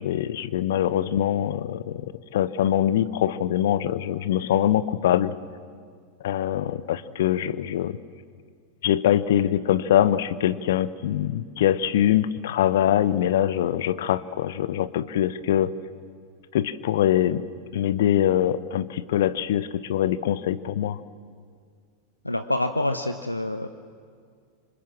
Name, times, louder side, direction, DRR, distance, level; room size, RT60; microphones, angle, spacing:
voice 1, 0.0-2.1 2.3-5.3 6.2-8.0 8.8-15.7 16.5-17.4 17.7-21.0, left 11 dB, 55° left, 17 dB, 0.9 m, -23 dB
voice 2, 22.2-23.7, left 1 dB, 85° left, 9 dB, 0.8 m, -26 dB
27.5 x 26.0 x 7.5 m, 2.1 s
figure-of-eight pair, 90°, 0 cm